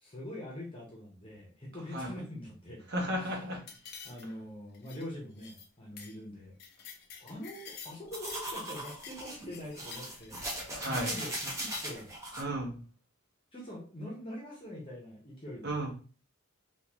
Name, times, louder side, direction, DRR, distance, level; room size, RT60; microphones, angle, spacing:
voice 1, 0.0-2.9 3.2-3.3 4.0-6.5 7.2-12.1 13.5-15.8, left 1 dB, 25° left, -3 dB, 0.9 m, -44 dB
voice 2, 2.9-3.6 10.7-11.1 12.4-12.8 15.6-15.9, right 1 dB, 50° right, 0 dB, 1.0 m, -34 dB
sound 1, 3.7-4.5 4.7-5.0 5.4-5.7 6.0-6.2 6.4-8.5 8.7-10.5 11.5-11.9, left 6 dB, 45° left, 0.6 m, -49 dB
sound 2, 8.1-12.4, right 1 dB, 15° right, 0.8 m, -39 dB
3.7 x 2.5 x 3.0 m, 0.38 s
head